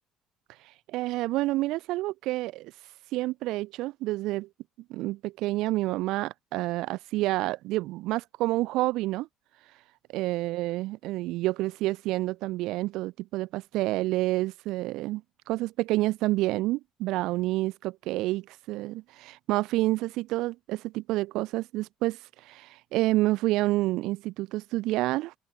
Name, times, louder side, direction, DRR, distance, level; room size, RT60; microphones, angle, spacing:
voice 1, 0.9-2.7 3.1-4.5 4.9-9.3 10.1-22.2 22.4-25.3, right 18 dB, 75° right, 0.6 m, -29 dB
cardioid pair, 145°, 0 cm